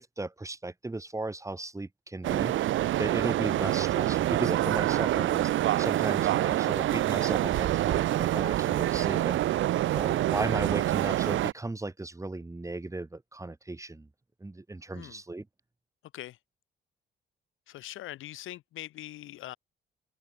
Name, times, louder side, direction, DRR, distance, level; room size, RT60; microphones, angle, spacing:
voice 1, 0.0-2.7 3.0-5.5 5.8-9.6 9.9-14.1 14.4-15.5, right 2 dB, 15° right, 2.9 m, -36 dB
sound 1, 2.2-11.5, right 14 dB, 80° right, 1.1 m, -26 dB
voice 2, 17.7-19.6, left 15 dB, 85° left, 6.6 m, -42 dB
open air
cardioid pair, 90°, 20 cm